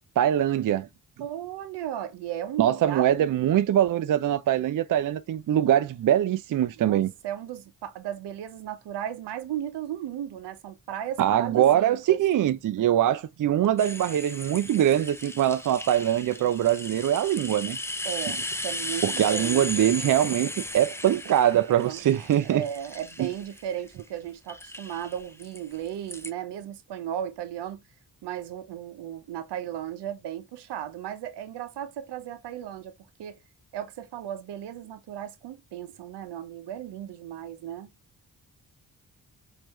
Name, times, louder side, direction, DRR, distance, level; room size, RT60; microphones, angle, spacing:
voice 1, 0.2-0.9 2.6-7.1 11.2-17.8 19.0-22.6 23.2-23.3, right 11 dB, 50° right, 0.5 m, -23 dB
voice 2, 1.2-3.3 6.7-12.2 18.0-19.7 21.9-27.8 28.2-32.9 33.2-33.4 33.7-37.9, right 10 dB, 80° right, 0.8 m, -35 dB
sound 1, 13.8-24.0 24.5-26.3, left 1 dB, 5° left, 0.6 m, -36 dB
4.4 x 2.8 x 2.9 m
supercardioid pair, 45°, 41 cm